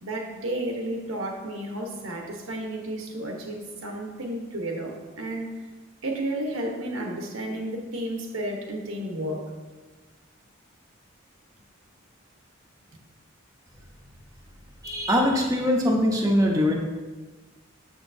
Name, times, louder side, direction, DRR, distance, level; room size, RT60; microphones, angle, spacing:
voice 1, 0.0-5.6 6.0-9.5, right 1 dB, 80° right, 2 dB, 1.0 m, -32 dB
voice 2, 14.8-16.7, left 1 dB, 15° right, -1 dB, 0.7 m, -22 dB
7.2 x 6.4 x 2.7 m, 1.3 s
head